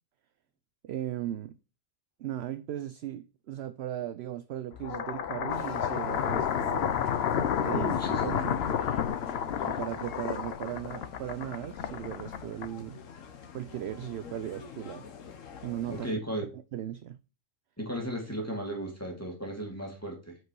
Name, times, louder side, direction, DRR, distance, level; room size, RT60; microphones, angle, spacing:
voice 1, 0.8-1.6 2.2-7.0 7.6-7.9 8.2-8.5 9.6-13.0 13.5-15.1 15.6-16.1 16.4-17.2, right 11 dB, 65° right, 0.7 m, -37 dB
sound 1, 4.8-13.0, left 8 dB, 60° left, 0.9 m, -31 dB
sound 2, 5.5-16.1, left 7 dB, 75° left, 1.4 m, -47 dB
voice 2, 7.7-8.5 15.9-16.5 17.8-20.4, right 1 dB, 10° left, 2.4 m, -35 dB
8.0 x 5.2 x 4.7 m
omnidirectional pair, 1.4 m